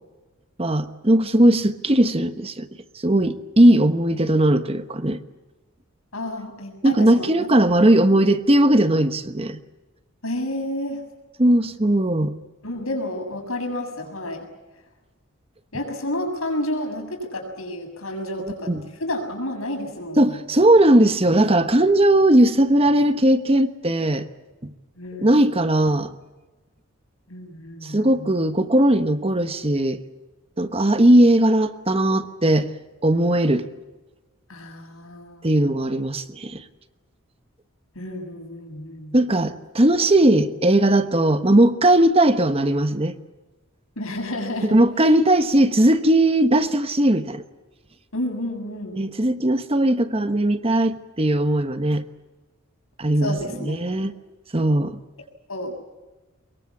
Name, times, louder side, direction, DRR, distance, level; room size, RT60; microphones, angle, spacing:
voice 1, 0.6-2.7 3.0-5.2 6.8-9.6 11.4-12.3 18.4-18.8 20.2-24.3 24.6-24.7 25.2-26.1 27.8-30.0 30.6-32.7 33.0-33.7 35.4-36.6 39.1-43.1 44.6-47.4 49.0-52.1 53.0-53.4 53.6-54.1 54.5-55.0, right 1 dB, 30° right, 1.1 m, -18 dB
voice 2, 6.1-7.5 10.2-11.0 12.6-14.5 15.7-20.4 25.0-25.5 27.3-28.3 34.5-35.5 37.9-39.2 44.0-45.2 48.1-49.0 53.2-54.1 55.5-55.8, left 1 dB, 80° left, 7.1 m, -31 dB
24.0 x 22.5 x 8.5 m
head